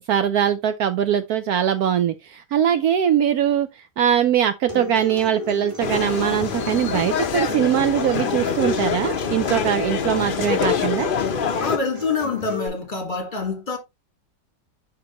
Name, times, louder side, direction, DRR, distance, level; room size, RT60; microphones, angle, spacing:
voice 1, 0.1-3.7 4.0-11.1, right 9 dB, 70° right, 1.0 m, -21 dB
Acoustic guitar, 4.7-12.7, left 2 dB, 10° right, 4.5 m, -36 dB
sound 1, 5.8-11.8, left 6 dB, 70° left, 0.5 m, -25 dB
voice 2, 11.6-13.8, left 4 dB, 30° left, 1.6 m, -26 dB
10.5 x 3.7 x 2.9 m
omnidirectional pair, 1.9 m